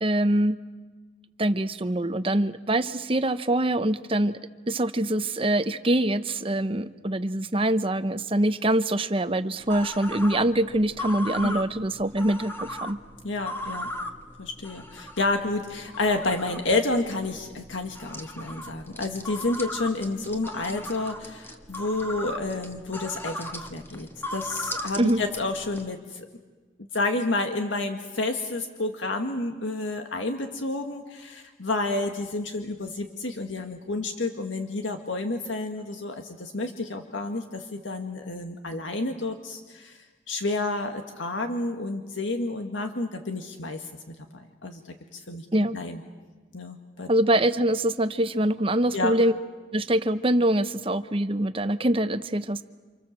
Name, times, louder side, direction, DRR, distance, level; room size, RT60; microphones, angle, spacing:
voice 1, 0.0-0.6 1.4-4.4 4.7-13.0 25.0-25.2 45.5-45.8 47.1-49.3 49.7-52.6, right 1 dB, 30° right, 11 dB, 0.9 m, -24 dB
sound 1, 9.6-25.9, left 1 dB, 10° left, 1.5 m, -38 dB
voice 2, 13.2-13.9 14.4-26.3 26.9-40.0 40.3-43.9 44.3-44.8 45.1-45.5 45.7-46.0 46.5-47.1 48.9-49.2, left 2 dB, 85° left, 5 dB, 1.8 m, -30 dB
29.5 x 27.0 x 7.5 m, 1.4 s
head